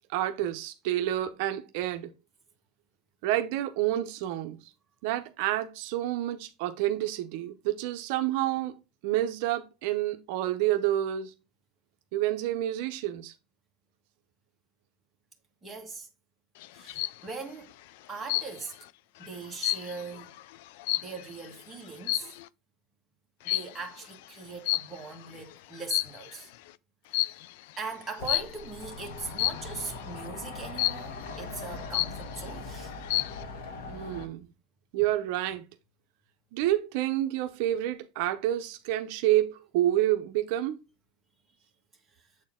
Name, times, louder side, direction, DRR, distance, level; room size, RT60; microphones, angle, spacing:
voice 1, 0.1-2.1 3.2-4.6 5.0-8.7 9.0-11.3 12.1-13.3 33.9-34.5 34.9-35.6 36.5-40.8, right 13 dB, 60° right, 0.7 m, -28 dB
voice 2, 15.6-16.1 16.7-17.7 18.1-18.7 19.2-20.3 21.0-22.3 23.4-26.5 27.1-27.4 27.8-32.9 33.4-33.5 42.1-42.3, right 4 dB, 10° right, 1.5 m, -41 dB
sound 1, 16.6-17.2 18.3-18.8 19.2-21.5 22.0-22.5 23.5-23.9 24.7-25.3 25.7-26.4 27.1-27.5 28.3-28.7 29.4-29.8 30.8-31.3 31.7-31.8 31.9-32.5 32.9-33.4, left 16 dB, 70° left, 0.3 m, -30 dB
sound 2, 28.2-34.3, left 3 dB, 85° left, 1.5 m, -41 dB
7.7 x 4.4 x 3.7 m
supercardioid pair, 165°, 0 cm